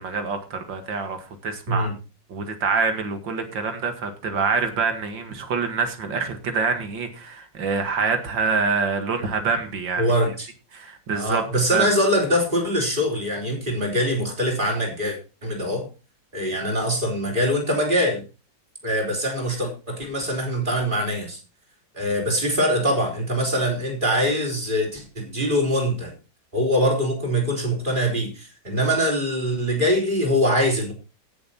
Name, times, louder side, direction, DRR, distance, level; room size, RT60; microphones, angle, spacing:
voice 1, 0.0-1.9 2.3-10.1 10.7-11.5 11.7-11.9, right 5 dB, 70° right, 2.5 m, -26 dB
voice 2, 10.0-10.5 11.1-15.9 16.3-18.2 18.8-21.4 21.9-26.1 26.5-30.9, equal, 25° right, 4.2 m, -23 dB
15.5 x 7.1 x 4.3 m
omnidirectional pair, 2.1 m